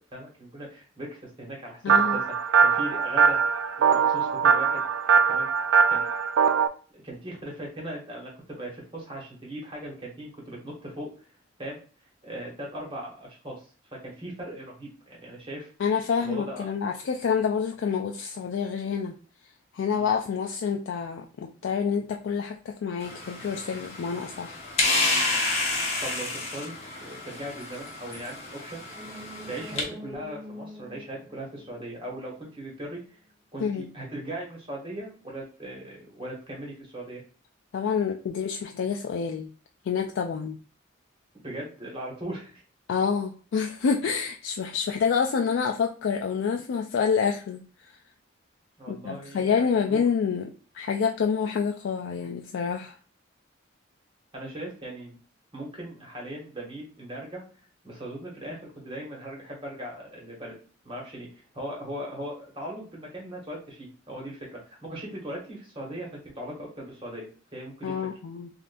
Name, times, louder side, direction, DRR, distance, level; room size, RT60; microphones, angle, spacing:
voice 1, 0.1-3.4 3.8-4.8 5.3-5.5 5.9-6.0 6.9-11.1 11.6-11.8 12.2-15.7 16.2-16.7 19.9-20.1 26.0-26.7 27.0-28.8 29.5-33.2 33.5-37.2 41.4-42.6 48.8-50.0 54.3-55.2 55.5-57.4 57.8-60.5 60.8-68.0, right 1 dB, 25° right, -2 dB, 1.2 m, -39 dB
voice 2, 1.8-2.2 15.8-19.1 19.7-24.6 33.6-33.9 37.7-39.5 39.9-40.6 42.9-48.0 48.9-50.5 50.7-53.0 67.8-68.5, left 6 dB, 70° left, 2 dB, 0.3 m, -27 dB
sound 1, 1.9-6.7, right 6 dB, 80° right, 0.3 m, -21 dB
sound 2, 23.0-29.8, left 2 dB, 30° left, 0.9 m, -30 dB
sound 3, 28.8-32.5 32.8-32.9, equal, ahead, 0.6 m, -45 dB
3.7 x 2.5 x 2.5 m, 0.39 s
head